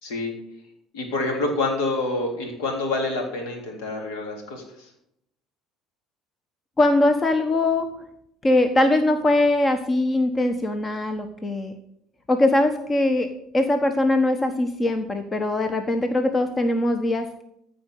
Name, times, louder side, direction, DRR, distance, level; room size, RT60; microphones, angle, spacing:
voice 1, 0.0-0.3 0.9-4.9, left 2 dB, 70° left, 2 dB, 3.3 m, -27 dB
voice 2, 6.8-7.9 8.4-11.7 12.3-13.3 13.5-17.4, left 2 dB, 25° left, 8 dB, 1.2 m, -21 dB
14.5 x 5.1 x 8.1 m, 0.77 s
hypercardioid pair, 60°, 0 cm